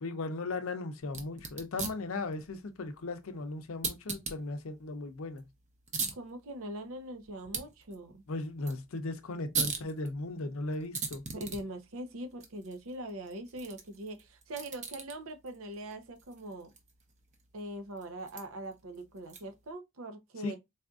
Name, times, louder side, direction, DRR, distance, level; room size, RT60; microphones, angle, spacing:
voice 1, 0.0-5.5 8.3-11.2 20.4-20.6, left 2 dB, 85° left, 0.6 m, -37 dB
sound 1, 1.0-19.7, right 5 dB, 35° right, 0.7 m, -42 dB
voice 2, 6.1-8.2 11.3-16.7 17.5-20.6, right 1 dB, 90° right, 0.7 m, -42 dB
4.1 x 2.5 x 2.4 m
head